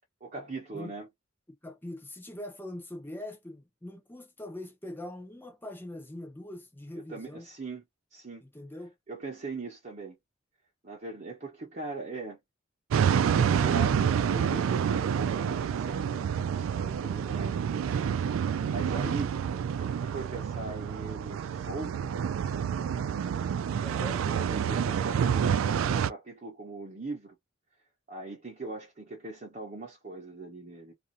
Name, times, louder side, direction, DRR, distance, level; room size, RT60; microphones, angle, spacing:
voice 1, 0.2-1.1 7.1-7.8 8.1-8.4 9.1-10.2 10.8-12.4 13.3-16.1 16.5-17.6 18.6-19.3 19.7-21.9 24.2-27.4 28.1-30.9, right 3 dB, 40° right, 0.8 m, -40 dB
voice 2, 1.6-7.5 8.4-8.9 18.8-19.2 23.8-24.3, left 1 dB, 10° left, 0.8 m, -42 dB
sound 1, 12.9-26.1, right 7 dB, 85° right, 0.3 m, -28 dB
2.5 x 2.5 x 2.6 m
head